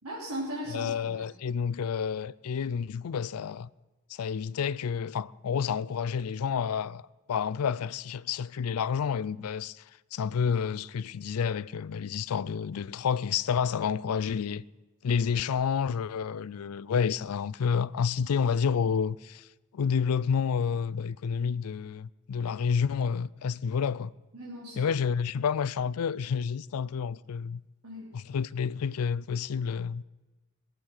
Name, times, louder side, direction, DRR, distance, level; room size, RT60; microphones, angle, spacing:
voice 1, 0.0-1.2 24.3-24.9 27.8-28.1, equal, 75° right, 3.6 m, -37 dB
voice 2, 0.7-3.7 4.1-9.8 10.1-14.6 15.0-19.5 19.7-24.1 24.8-27.6 28.1-30.0, left 6 dB, 75° left, 0.4 m, -29 dB
20.0 x 8.4 x 6.2 m
head